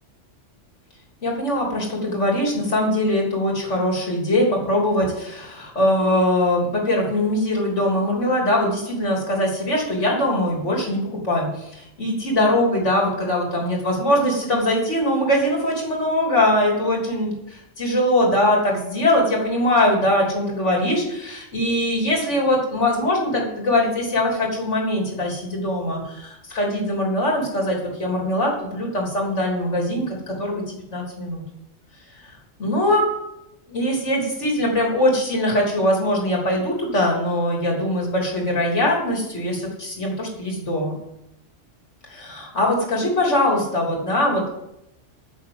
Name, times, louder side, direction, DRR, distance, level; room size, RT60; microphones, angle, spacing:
voice 1, 1.2-31.4 32.2-32.3 32.6-33.1 33.7-40.9 42.1-44.5, left 1 dB, 70° left, -1 dB, 3.6 m, -22 dB
9.6 x 7.2 x 7.9 m, 0.84 s
omnidirectional pair, 1.3 m